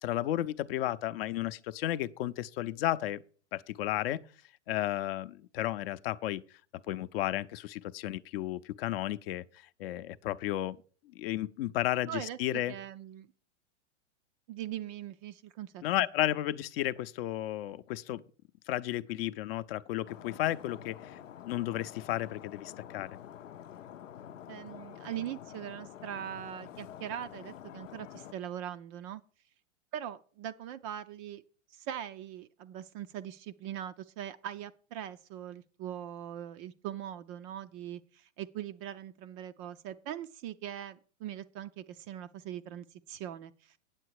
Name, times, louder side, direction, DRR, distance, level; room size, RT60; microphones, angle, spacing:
voice 1, 0.0-3.2 3.5-4.2 4.7-6.4 6.9-9.4 9.8-10.8 11.1-12.7 15.8-18.2 18.7-23.1, left 14 dB, 50° left, 0.6 m, -33 dB
voice 2, 12.1-13.3 14.5-16.1 24.5-29.2 29.9-31.4 31.7-43.8, right 10 dB, 30° right, 0.3 m, -41 dB
Stream, 20.1-28.3, left 10 dB, 90° left, 0.7 m, -48 dB
9.1 x 7.7 x 4.7 m
hypercardioid pair, 125°, 37 cm